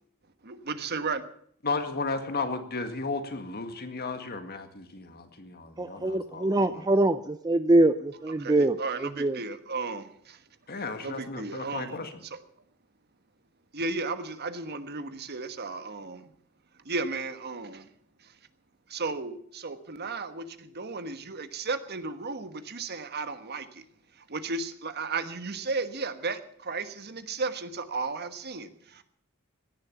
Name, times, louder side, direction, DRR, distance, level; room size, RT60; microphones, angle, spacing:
voice 1, 0.4-1.2 8.4-10.4 11.0-12.0 12.3-12.4 13.7-16.3 16.8-17.9 18.9-23.8 24.3-29.0, right 3 dB, 50° right, 10 dB, 1.3 m, -34 dB
voice 2, 1.6-6.8 10.7-12.2, left 3 dB, 45° left, 8 dB, 1.9 m, -34 dB
voice 3, 5.8-9.4, right 2 dB, 20° right, 11 dB, 0.5 m, -24 dB
17.0 x 10.5 x 7.1 m, 0.64 s
head